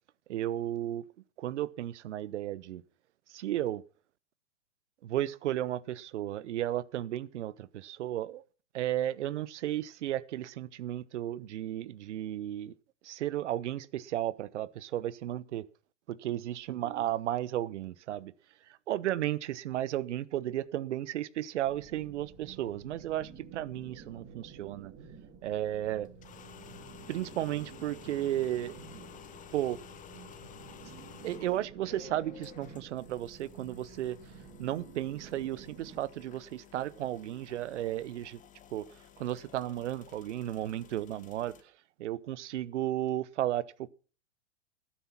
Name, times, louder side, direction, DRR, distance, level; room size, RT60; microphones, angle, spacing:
voice 1, 0.3-1.0 1.4-2.8 3.3-3.8 5.0-8.4 8.7-12.7 13.0-15.6 16.1-18.3 18.9-24.9 25.4-26.1 27.1-28.8 29.5-29.8 31.2-34.2 34.6-38.4 38.7-41.5 42.0-43.9, right 13 dB, 70° right, 0.9 m, -34 dB
sound 1, 21.6-36.0, right 6 dB, 30° right, 2.4 m, -51 dB
sound 2, 26.1-41.6, left 9 dB, 20° left, 1.4 m, -53 dB
13.0 x 10.0 x 5.7 m
hypercardioid pair, 120°, 36 cm